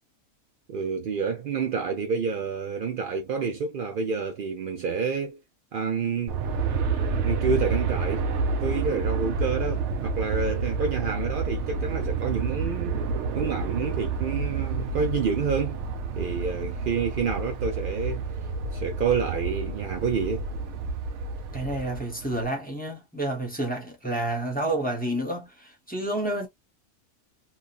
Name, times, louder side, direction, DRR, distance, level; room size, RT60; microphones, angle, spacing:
voice 1, 0.7-5.4 5.7-6.3 7.2-8.3 8.6-13.0 13.3-15.8 16.2-18.2 18.7-20.4, right 5 dB, 85° right, 0.4 m, -28 dB
Aircraft, 6.3-22.5, right 4 dB, 65° right, 0.8 m, -29 dB
voice 2, 21.5-26.5, right 1 dB, 5° left, 0.9 m, -29 dB
2.9 x 2.4 x 2.4 m
omnidirectional pair, 1.5 m